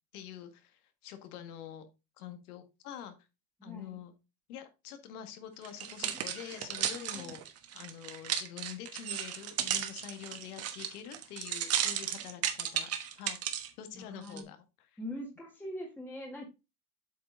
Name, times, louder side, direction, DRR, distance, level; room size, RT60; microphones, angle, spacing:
voice 1, 0.1-1.8 2.2-3.2 3.6-4.1 4.5-7.4 7.7-12.9 13.2-13.4 13.8-14.6 14.9-15.0, left 10 dB, 80° left, 8 dB, 1.9 m, -46 dB
voice 2, 3.6-4.0 6.0-6.1 7.1-7.3 13.9-14.5 15.0-16.5, left 1 dB, 5° left, 0 dB, 1.6 m, -42 dB
sound 1, 5.6-13.7 14.3-14.4, right 10 dB, 35° right, 1.2 m, -34 dB
8.1 x 5.2 x 3.8 m, 0.26 s
supercardioid pair, 130°, 44 cm